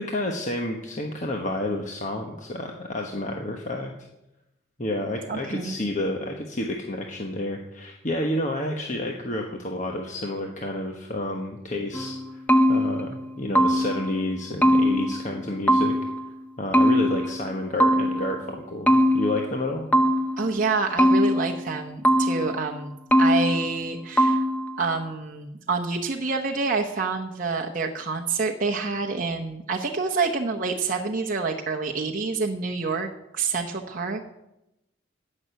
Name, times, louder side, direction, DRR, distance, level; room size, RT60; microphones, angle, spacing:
voice 1, 0.0-3.9 4.8-12.4 12.7-15.9 16.6-19.9, left 1 dB, 35° left, 2 dB, 1.2 m, -30 dB
voice 2, 5.3-5.8 20.4-24.4 24.8-34.2, right 4 dB, 40° right, 1 dB, 0.9 m, -27 dB
sound 1, 11.9-14.1 14.6-16.3 16.7-18.4 18.9-20.5 21.0-22.6 23.1-23.9 24.2-24.8, equal, 5° left, 0.5 m, -21 dB
15.0 x 6.5 x 9.2 m, 0.92 s
head